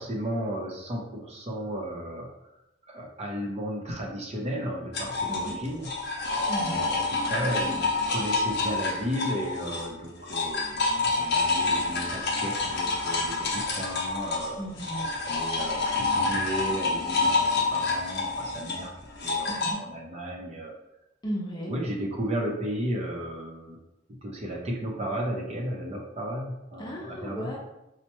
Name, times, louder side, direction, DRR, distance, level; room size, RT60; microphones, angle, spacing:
voice 1, 0.0-2.3 2.9-5.9 6.6-14.6 15.2-18.9 19.2-20.7 21.7-23.8 24.2-27.5, equal, 35° right, -1 dB, 0.6 m, -34 dB
sound 1, 4.9-9.9 10.2-19.7, left 3 dB, 60° left, 0.7 m, -28 dB
voice 2, 6.5-6.8 14.5-15.1 19.6-19.8 21.2-21.7 26.8-27.6, equal, 20° left, -2 dB, 0.6 m, -35 dB
4.3 x 2.1 x 2.9 m, 0.90 s
head